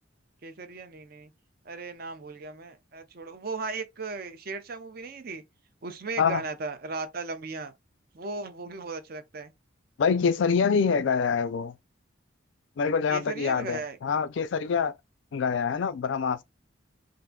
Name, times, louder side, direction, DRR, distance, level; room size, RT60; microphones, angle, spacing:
voice 1, 0.4-1.3 1.6-5.4 5.8-7.7 8.1-9.5 13.1-14.0, right 3 dB, 50° right, 0.6 m, -37 dB
voice 2, 10.0-11.7 12.8-14.9 15.3-16.4, left 6 dB, 65° left, 0.4 m, -25 dB
3.6 x 2.5 x 2.2 m
head